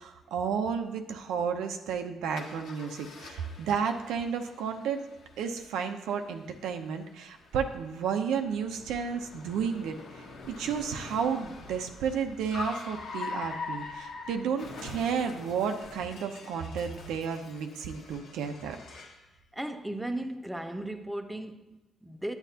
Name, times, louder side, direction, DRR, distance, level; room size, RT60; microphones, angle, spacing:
voice 1, 0.0-5.0 5.4-18.8, right 6 dB, 90° right, 0.8 m, -32 dB
Car, 2.3-19.2, left 4 dB, 80° left, 1.6 m, -44 dB
voice 2, 19.5-22.3, right 1 dB, 5° right, 0.7 m, -36 dB
9.5 x 8.8 x 2.9 m
cardioid pair, 90°, 0 cm